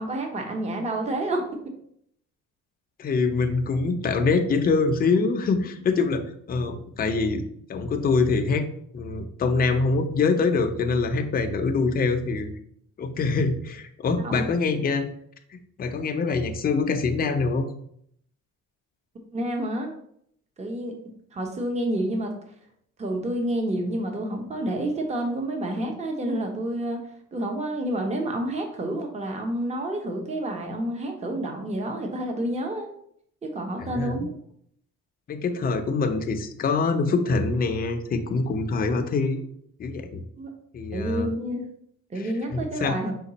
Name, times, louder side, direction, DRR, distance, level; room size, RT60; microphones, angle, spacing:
voice 1, 0.0-1.4 14.2-14.4 19.3-19.9 20.6-21.0 21.3-22.3 23.0-27.0 27.3-32.9 33.4-34.3 40.4-40.5 40.9-41.7 42.1-43.1, right 1 dB, 20° right, 3 dB, 0.7 m, -29 dB
voice 2, 3.0-7.4 7.7-8.6 8.9-12.5 13.0-15.1 15.5-17.7 33.8-34.2 35.3-39.4 39.8-40.2 40.7-41.3 42.2-43.0, left 4 dB, 30° left, 6 dB, 0.5 m, -24 dB
5.1 x 2.3 x 3.9 m, 0.68 s
cardioid pair, 125°, 31 cm